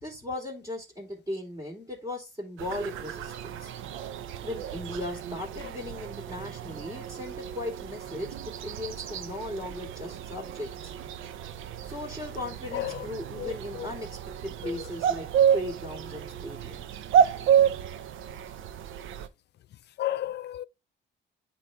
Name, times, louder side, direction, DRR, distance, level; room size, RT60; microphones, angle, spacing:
voice 1, 0.0-3.7 4.4-10.9 11.8-14.1 14.4-15.3 15.5-17.0, left 1 dB, 20° right, 3.4 m, -37 dB
sound 1, 2.6-19.3, right 8 dB, 80° right, 0.7 m, -30 dB
voice 2, 12.7-13.1 13.4-13.9 14.6-14.7 20.0-20.6, left 13 dB, 60° left, 0.4 m, -33 dB
9.6 x 3.3 x 3.4 m
cardioid pair, 90°, 20 cm